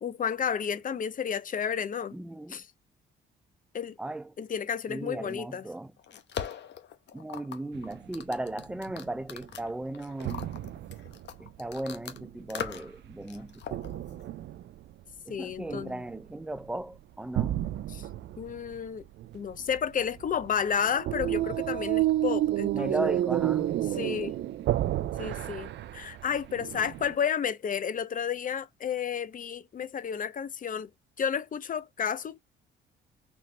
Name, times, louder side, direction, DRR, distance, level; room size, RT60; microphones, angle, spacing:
voice 1, 0.0-2.2 2.5-2.7 3.7-4.0 4.4-5.7 15.3-16.0 17.9-18.1 18.4-19.0 19.3-23.1 23.9-24.3 25.2-30.9 31.2-32.4, left 7 dB, 40° left, 0.6 m, -31 dB
voice 2, 2.1-2.6 4.0-4.3 4.9-5.9 7.1-10.5 11.4-13.8 15.3-17.6 22.7-23.7, right 2 dB, 5° right, 0.4 m, -36 dB
sound 1, 5.7-12.2 12.5-13.0 13.3-14.3, left 8 dB, 65° left, 0.9 m, -40 dB
sound 2, 7.7-8.2 8.6-9.7 10.2-12.5 13.0-15.1 15.5-16.2 16.6-17.0 17.4-27.1, right 13 dB, 65° right, 0.4 m, -31 dB
4.3 x 3.0 x 3.1 m
cardioid pair, 90°, 20 cm